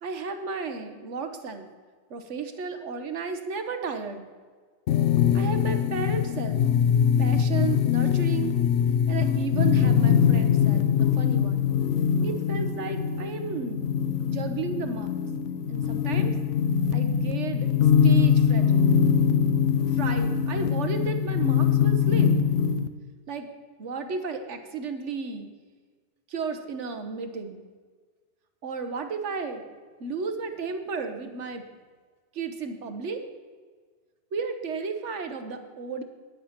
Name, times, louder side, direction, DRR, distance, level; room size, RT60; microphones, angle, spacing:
voice 1, 0.0-1.7 2.1-4.3 5.3-6.6 7.2-8.5 9.1-11.7 12.2-13.9 14.3-15.1 15.7-16.3 16.9-17.7 18.0-18.9 19.9-22.3 23.3-23.5 23.8-25.5 26.3-27.6 28.6-29.6 30.0-31.6 32.3-33.2 34.3-36.0, right 5 dB, 75° right, 7 dB, 1.3 m, -33 dB
sound 1, 4.9-22.9, left 7 dB, 75° left, 1.0 m, -23 dB
10.0 x 9.4 x 5.8 m, 1.5 s
omnidirectional pair, 1.2 m